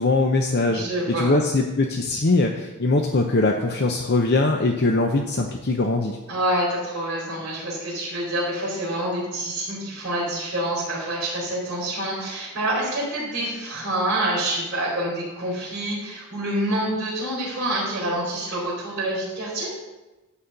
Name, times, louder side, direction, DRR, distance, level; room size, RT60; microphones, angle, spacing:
voice 1, 0.0-0.8 1.2-6.2, left 2 dB, 50° left, 2 dB, 0.7 m, -21 dB
voice 2, 0.7-1.3 6.3-19.7, right 1 dB, 50° right, -9 dB, 4.3 m, -27 dB
13.0 x 4.3 x 7.9 m, 1.1 s
head